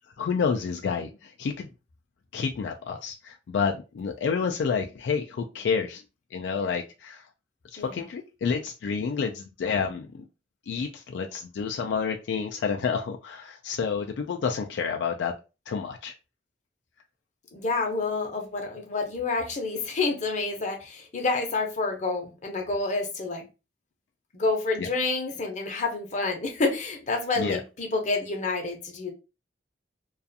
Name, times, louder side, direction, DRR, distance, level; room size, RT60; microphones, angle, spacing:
voice 1, 0.2-1.7 2.3-6.0 6.3-7.2 7.7-10.2 10.7-15.4 15.7-16.1 24.8-24.9 27.4-27.6, left 5 dB, 75° left, 0.3 m, -29 dB
voice 2, 17.5-23.4 24.3-29.1, left 3 dB, 40° left, 0.7 m, -28 dB
2.4 x 2.3 x 2.6 m
head